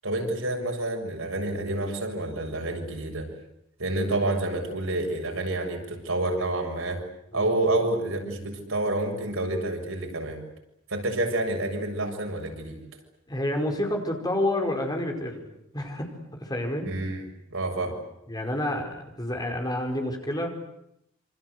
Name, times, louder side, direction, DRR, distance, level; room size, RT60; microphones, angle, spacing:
voice 1, 0.0-3.3 3.8-7.1 7.3-10.4 10.9-12.8 16.9-17.2 17.5-18.0, right 2 dB, 85° right, 2 dB, 7.4 m, -28 dB
voice 2, 13.3-16.9 17.8-17.9 18.3-20.5, left 1 dB, 20° left, 3 dB, 5.1 m, -29 dB
27.5 x 27.0 x 8.1 m, 0.78 s
head